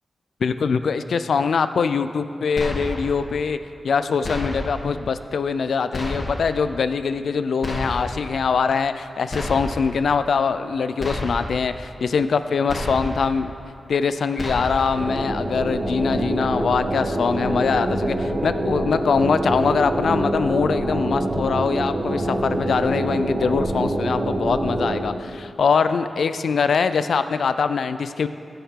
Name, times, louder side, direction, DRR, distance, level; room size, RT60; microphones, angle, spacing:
voice 1, 0.4-3.6 3.8-13.5 13.9-28.3, left 5 dB, 80° left, 11 dB, 0.4 m, -23 dB
sound 1, 2.6-3.2 4.2-4.9 5.9-6.6 7.6-8.3 9.3-10.0 11.0-11.7 12.7-13.4 14.4-15.1, left 1 dB, 50° left, 1.6 m, -30 dB
sound 2, 14.9-25.0, right 1 dB, 55° right, 1.5 m, -25 dB
15.5 x 7.1 x 3.7 m, 2.5 s
cardioid pair, 50°, 0 cm